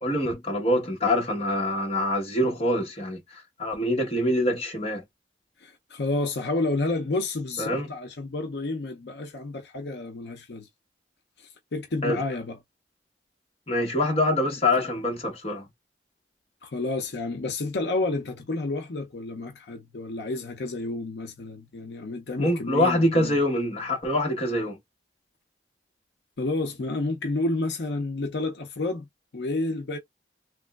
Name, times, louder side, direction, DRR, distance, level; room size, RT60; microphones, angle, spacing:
voice 1, 0.0-5.0 7.6-7.9 12.0-12.2 13.7-15.6 22.4-24.8, left 1 dB, 30° left, 1.1 m, -25 dB
voice 2, 5.6-10.7 11.4-12.6 16.6-23.4 26.4-29.1 29.3-30.0, left 2 dB, 65° left, 0.6 m, -30 dB
3.4 x 2.9 x 2.3 m
head